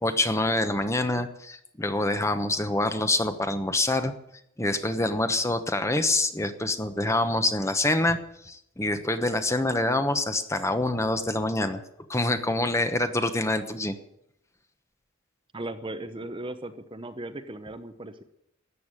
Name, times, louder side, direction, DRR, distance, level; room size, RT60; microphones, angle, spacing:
voice 1, 0.0-4.1 4.6-8.2 8.4-11.8 12.1-14.0, left 2 dB, 15° left, 9 dB, 1.0 m, -26 dB
voice 2, 15.5-18.2, right 2 dB, 25° right, 9 dB, 0.8 m, -37 dB
14.0 x 9.4 x 9.9 m, 0.78 s
head